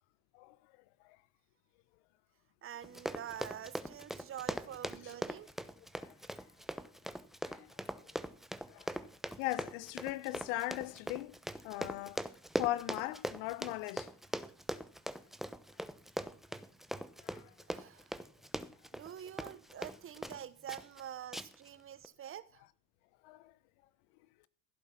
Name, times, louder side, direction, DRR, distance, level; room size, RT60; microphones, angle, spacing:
voice 1, 2.6-5.5 17.7-18.1 18.9-22.6, right 10 dB, 35° right, 1.0 m, -46 dB
Run, 2.8-20.4 20.7-21.0 21.3-21.7 22.0-22.1, equal, ahead, 0.9 m, -41 dB
voice 2, 9.4-11.3 11.6-12.2 12.6-14.1 17.2-17.5 23.2-23.5, left 17 dB, 70° left, 1.0 m, -38 dB
15.5 x 8.4 x 5.8 m
hypercardioid pair, 85°, 36 cm